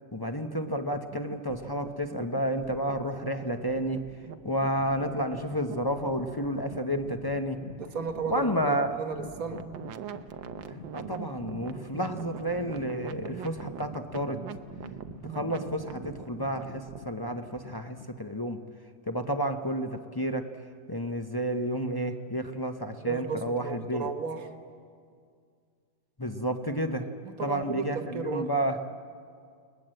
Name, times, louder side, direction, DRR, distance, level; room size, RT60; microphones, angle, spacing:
voice 1, 0.1-4.0 4.4-7.6 8.3-9.0 10.7-14.4 15.2-18.6 19.1-20.5 20.9-24.1 26.2-27.1 27.4-28.8, equal, 25° left, 6 dB, 0.4 m, -31 dB
sound 1, 0.9-17.1, right 10 dB, 80° right, 1.6 m, -43 dB
sound 2, 4.1-18.3, left 5 dB, 45° left, 0.9 m, -48 dB
voice 2, 7.8-9.7 23.0-24.5 27.2-28.6, right 5 dB, 50° right, 8 dB, 1.6 m, -34 dB
29.5 x 20.0 x 7.8 m, 2.2 s
omnidirectional pair, 2.1 m